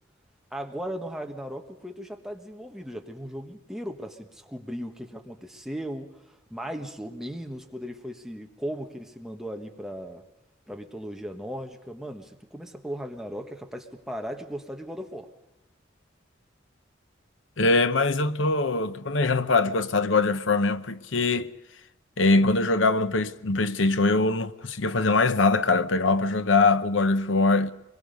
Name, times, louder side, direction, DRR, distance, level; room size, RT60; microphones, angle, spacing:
voice 1, 0.5-10.2 10.7-15.3, equal, ahead, 1.4 m, -37 dB
voice 2, 17.6-21.5 22.2-27.7, left 3 dB, 70° left, 0.9 m, -22 dB
23.5 x 22.0 x 5.3 m
head